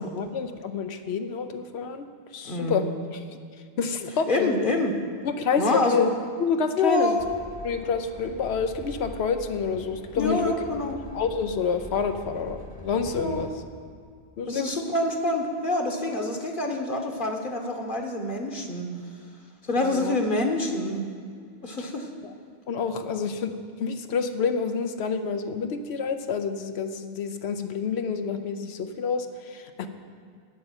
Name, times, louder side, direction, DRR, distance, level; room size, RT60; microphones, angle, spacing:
voice 1, 0.0-2.1 2.3-2.8 3.3-3.4 3.8-4.7 5.2-6.1 6.4-7.2 7.6-10.5 11.1-13.5 14.4-14.7 19.8-20.2 22.2-22.3 22.7-23.5 23.8-29.9, left 5 dB, 85° left, 8 dB, 1.0 m, -28 dB
voice 2, 2.4-2.9 4.3-4.9 5.6-6.1 6.8-7.2 10.2-11.0 13.2-13.4 14.5-18.9 19.6-21.1 21.6-22.1 23.1-23.2, left 2 dB, 55° left, 2 dB, 1.3 m, -26 dB
Train, 7.2-13.5, left 2 dB, 25° left, 0.7 m, -43 dB
10.5 x 6.7 x 8.8 m, 2.2 s
omnidirectional pair, 1.1 m